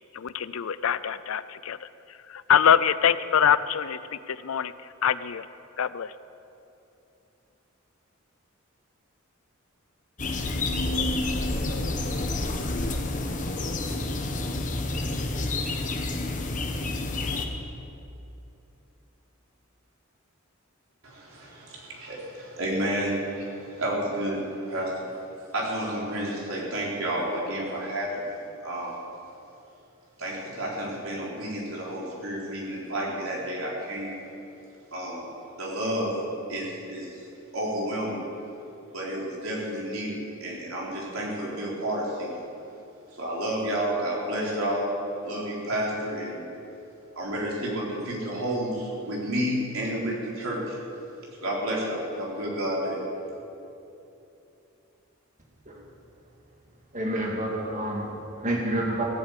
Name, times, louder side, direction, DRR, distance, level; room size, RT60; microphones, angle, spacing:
voice 1, 0.2-1.8 2.5-4.0 4.4-4.7 5.0-5.4 5.8-6.1, left 8 dB, 75° left, 16 dB, 0.5 m, -23 dB
sound 1, 10.2-17.5, left 2 dB, 40° left, 1.1 m, -29 dB
voice 2, 21.0-25.1 25.5-29.0 30.2-34.2 34.9-35.3 35.6-36.1 36.5-37.2 37.5-38.2 38.9-42.5 43.1-44.9 45.2-46.4 47.2-50.8 51.4-53.0, right 1 dB, 85° right, -4 dB, 3.9 m, -30 dB
voice 3, 56.9-59.0, right 1 dB, 35° right, -1 dB, 2.3 m, -29 dB
17.0 x 8.1 x 8.3 m, 2.8 s
head